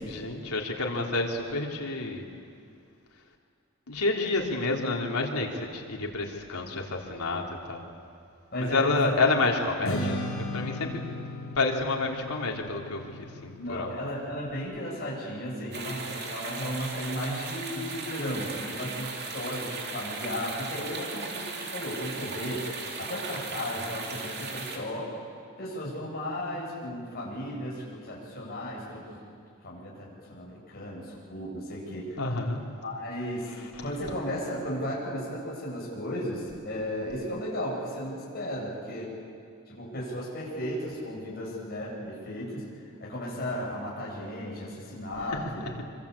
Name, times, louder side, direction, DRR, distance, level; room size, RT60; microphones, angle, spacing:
voice 1, 0.1-2.3 3.9-7.4 7.7-7.8 8.6-10.2 10.5-11.1 11.6-13.9 32.2-32.6, left 3 dB, 90° left, 0 dB, 3.6 m, -29 dB
voice 2, 8.5-9.1 13.6-22.7 23.0-25.1 25.6-29.2 29.6-32.2 32.8-33.5 33.8-39.1 39.7-42.7 43.0-45.7, equal, 45° left, -4 dB, 8.0 m, -35 dB
Strum, 9.8-16.1, left 1 dB, 65° left, 6.6 m, -37 dB
sound 1, 15.7-24.8, right 4 dB, 45° right, 3.1 m, -37 dB
25.5 x 25.0 x 8.5 m, 2.4 s
head